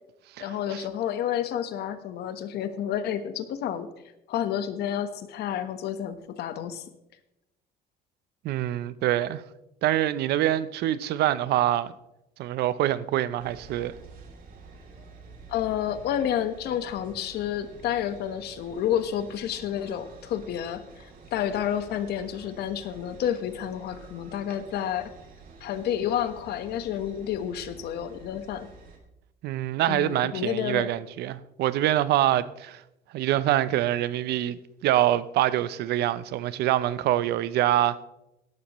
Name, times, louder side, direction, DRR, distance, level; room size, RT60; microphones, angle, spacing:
voice 1, 0.4-3.9 4.3-6.8 15.5-21.1 21.3-25.1 25.6-28.7 29.9-30.9, left 10 dB, 75° left, 1.2 m, -30 dB
voice 2, 8.4-9.4 9.8-11.9 12.4-13.9 29.4-32.8 33.1-38.0, right 13 dB, 75° right, 0.7 m, -25 dB
sound 1, 13.4-29.0, right 4 dB, 60° right, 3.0 m, -49 dB
17.0 x 12.0 x 3.1 m
cardioid pair, 110°, 17 cm